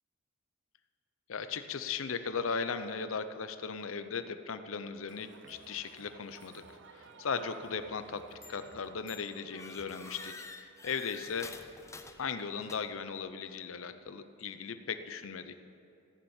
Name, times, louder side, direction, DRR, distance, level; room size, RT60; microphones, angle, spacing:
voice 1, 1.3-6.6 6.9-11.5 12.2-15.6, left 5 dB, 75° left, 11 dB, 0.6 m, -37 dB
Crowd, 5.1-10.3, right 4 dB, 60° right, 0.7 m, -55 dB
sound 1, 8.4-8.7 9.1-13.1, left 3 dB, 15° left, 0.6 m, -49 dB
14.5 x 7.0 x 8.8 m, 2.7 s
head